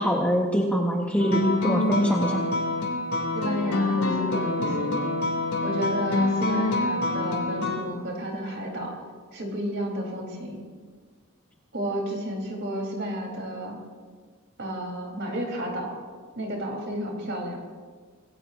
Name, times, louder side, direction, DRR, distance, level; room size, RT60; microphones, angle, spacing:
voice 1, 0.0-2.4, equal, 5° left, -1 dB, 1.3 m, -23 dB
sound 1, 1.2-7.8, left 2 dB, 85° left, 2.9 m, -26 dB
voice 2, 3.3-5.0 5.6-9.0 9.3-10.6 11.7-13.8 14.6-16.0 16.4-17.6, equal, 55° right, 0 dB, 4.1 m, -31 dB
26.0 x 17.0 x 2.7 m, 1.5 s
head